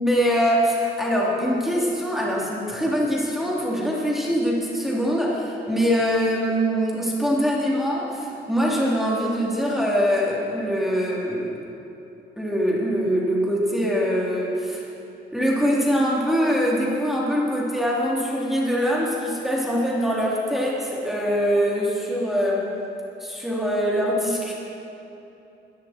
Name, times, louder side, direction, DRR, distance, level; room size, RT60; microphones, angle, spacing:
voice 1, 0.0-11.6 12.4-14.8 15.3-22.7 23.2-24.5, equal, ahead, -5 dB, 3.3 m, -23 dB
20.0 x 14.5 x 4.5 m, 2.9 s
cardioid pair, 90°, 20 cm